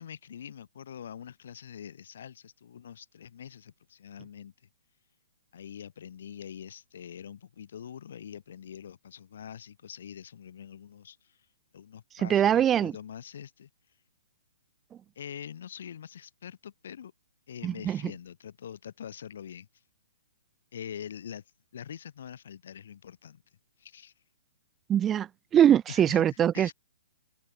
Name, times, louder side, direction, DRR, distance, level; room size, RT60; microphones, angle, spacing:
voice 1, 0.0-4.5 5.5-11.4 11.7-13.7 15.1-17.1 17.5-19.7 20.7-21.4 21.7-23.4 23.8-24.1 25.9-26.2 26.5-26.7, left 8 dB, 60° left, 6.8 m, -44 dB
voice 2, 12.2-12.9 17.6-18.0 24.9-26.7, right 10 dB, 15° right, 1.0 m, -23 dB
hypercardioid pair, 145°, 0 cm